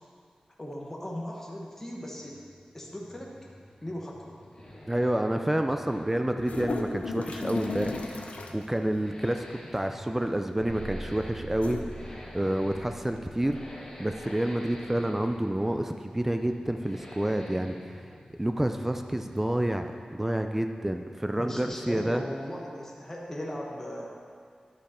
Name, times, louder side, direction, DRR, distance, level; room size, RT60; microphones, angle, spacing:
voice 1, 0.6-2.4 2.7-3.3 3.8-4.4 21.4-24.2, equal, 15° left, -3 dB, 1.0 m, -38 dB
Accelerating revving vroom, 2.1-20.1 20.4-20.5, left 1 dB, 40° left, 2.0 m, -47 dB
voice 2, 4.9-11.8 12.3-13.6 14.0-18.1 18.4-22.2, right 1 dB, 10° right, 6 dB, 0.3 m, -29 dB
sound 1, 6.4-8.6 9.9-10.3 11.5-11.8, left 3 dB, 80° left, 0.6 m, -35 dB
sound 2, 10.6-15.6, right 1 dB, 60° right, 0.8 m, -44 dB
10.5 x 5.3 x 4.3 m, 2.1 s
wide cardioid pair, 105°, 2 cm